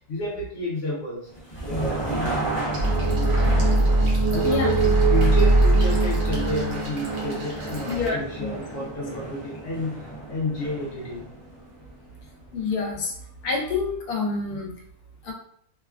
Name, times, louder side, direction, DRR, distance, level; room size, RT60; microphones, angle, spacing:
voice 1, 0.1-1.3 1.6-2.5 2.8-3.6 4.0-10.0 10.3-11.3, left 1 dB, 65° left, -3 dB, 0.9 m, -31 dB
sound 1, 1.3-13.1, right 2 dB, 45° left, 0.4 m, -33 dB
sound 2, 2.7-8.1, right 2 dB, 50° right, 0.8 m, -42 dB
sound 3, 2.8-8.3, right 2 dB, 90° right, 0.4 m, -21 dB
voice 2, 7.9-8.6 12.5-13.1 13.4-14.7 15.2-15.3, left 4 dB, 80° left, 1 dB, 1.2 m, -27 dB
2.9 x 2.2 x 2.3 m, 0.63 s
omnidirectional pair, 1.6 m